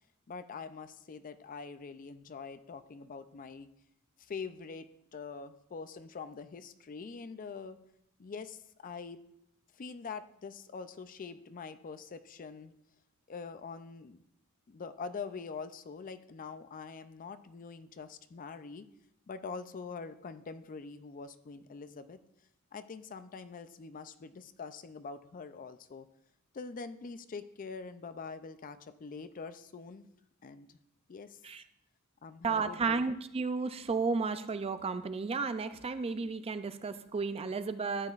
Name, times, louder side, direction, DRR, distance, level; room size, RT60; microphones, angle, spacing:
voice 1, 0.3-3.7 4.2-7.8 8.2-9.2 9.7-12.7 13.3-14.2 14.7-18.9 19.3-22.2 22.7-26.1 26.5-30.1 30.4-30.8 31.1-31.4 32.2-33.0, left 5 dB, 40° left, 12 dB, 0.4 m, -44 dB
voice 2, 32.4-38.1, right 4 dB, 25° right, 11 dB, 0.4 m, -33 dB
13.0 x 8.7 x 2.4 m, 0.77 s
head